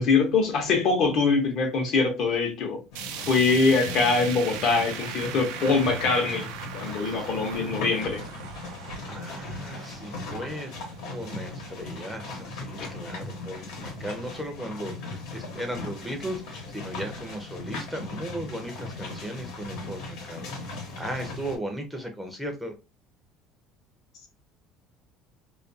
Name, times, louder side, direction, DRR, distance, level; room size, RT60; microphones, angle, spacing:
voice 1, 0.0-2.8 3.3-6.5 6.7-8.2 12.8-12.9, left 4 dB, 55° left, 0.7 m, -23 dB
sound 1, 2.9-21.6, left 2 dB, 90° left, 1.0 m, -38 dB
sound 2, 2.9-13.1 13.5-13.6 14.0-14.1 14.9-15.0, right 9 dB, 90° right, 0.3 m, -40 dB
voice 2, 7.0-7.4 9.1-10.7 11.0-20.5 21.0-22.7, equal, 5° right, 0.5 m, -36 dB
2.3 x 2.2 x 2.6 m
cardioid pair, 145°, 0 cm